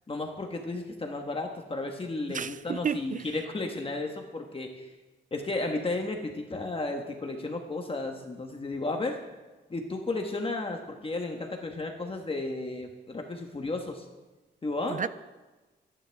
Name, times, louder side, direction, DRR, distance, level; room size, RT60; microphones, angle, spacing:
voice 1, 0.1-4.8 5.3-9.2 9.7-14.0 14.6-15.0, left 2 dB, 30° left, 1.4 m, -33 dB
voice 2, 2.3-3.4 14.9-15.1, right 7 dB, 45° right, 0.4 m, -32 dB
26.5 x 10.5 x 3.5 m
wide cardioid pair, 120°, 19 cm